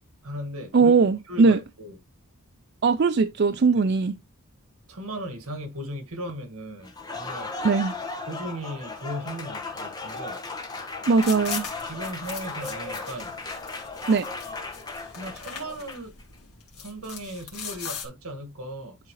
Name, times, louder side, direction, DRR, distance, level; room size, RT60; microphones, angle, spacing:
voice 1, 0.2-0.9 1.3-2.0 4.9-7.5 8.3-10.4 11.8-13.3 14.2-14.3 15.2-16.1 16.8-19.0, right 1 dB, 75° right, 1.8 m, -37 dB
voice 2, 0.7-1.6 2.8-4.1 7.6-7.9 11.1-11.7 14.1-14.3, right 4 dB, 45° right, 0.4 m, -20 dB
Applause, 6.8-16.2, left 3 dB, 20° left, 1.1 m, -36 dB
sound 1, 11.1-18.1, left 7 dB, 75° left, 2.0 m, -40 dB
10.5 x 3.7 x 3.1 m
head